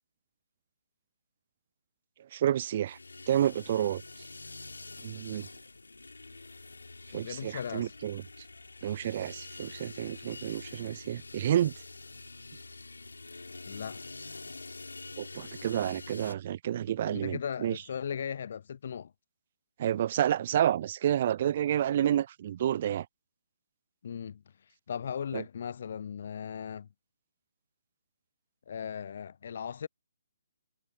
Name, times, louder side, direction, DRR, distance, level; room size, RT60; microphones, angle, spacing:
voice 1, 2.3-3.0 3.3-4.0 5.0-5.5 7.1-8.2 8.8-11.7 15.2-17.8 19.8-23.1 25.3-25.4, right 11 dB, 40° right, 0.4 m, -29 dB
sound 1, 2.9-16.3, left 3 dB, 80° left, 4.2 m, -46 dB
voice 2, 7.1-8.0 13.7-14.0 16.9-19.1 24.0-24.4 24.9-26.9 28.7-29.9, left 7 dB, 55° left, 0.4 m, -37 dB
figure-of-eight pair, 140°, 0 cm